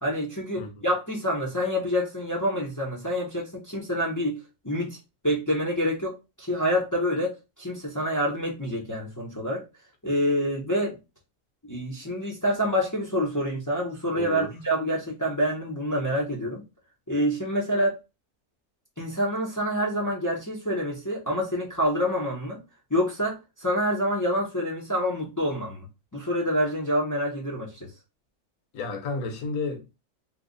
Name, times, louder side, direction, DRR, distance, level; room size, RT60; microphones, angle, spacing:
voice 1, 0.0-4.4 4.6-5.0 5.2-6.1 6.4-7.3 7.6-9.6 10.0-11.0 11.6-16.6 17.1-17.9 19.0-22.6 22.9-25.8 26.1-27.9, equal, 25° left, 0.4 m, -27 dB
voice 2, 14.1-14.5 28.7-30.0, left 4 dB, 75° left, 1.3 m, -32 dB
3.2 x 2.1 x 3.7 m
omnidirectional pair, 1.6 m